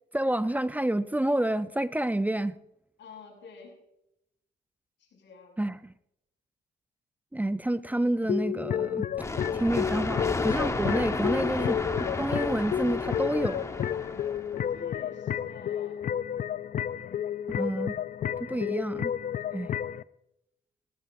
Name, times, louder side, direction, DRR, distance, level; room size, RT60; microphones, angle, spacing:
voice 1, 0.1-2.6 5.6-5.9 7.3-9.0 9.5-11.8 12.2-13.6 17.5-18.0 18.4-19.1 19.5-19.7, right 1 dB, 10° right, 0.5 m, -29 dB
voice 2, 3.0-3.8 5.0-5.7 14.7-16.1, left 4 dB, 65° left, 6.9 m, -49 dB
sound 1, 8.2-20.0, left 9 dB, 45° left, 0.4 m, -31 dB
sound 2, 9.2-14.8, left 2 dB, 15° left, 1.0 m, -33 dB
18.0 x 18.0 x 2.6 m
cardioid pair, 90°, 20 cm